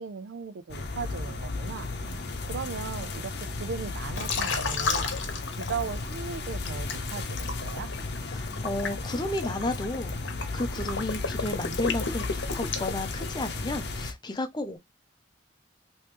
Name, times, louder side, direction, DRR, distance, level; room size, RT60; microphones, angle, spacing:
voice 1, 0.0-1.9 2.5-3.3 3.6-5.1 5.6-7.9, right 5 dB, 75° right, 0.4 m, -37 dB
sound 1, 0.7-14.1, left 3 dB, 60° left, 0.7 m, -34 dB
Liquid, 4.2-6.2 6.6-13.6, left 4 dB, 90° left, 0.9 m, -33 dB
voice 2, 8.3-10.2 10.5-14.8, left 1 dB, 25° left, 0.6 m, -32 dB
3.0 x 3.0 x 3.2 m
head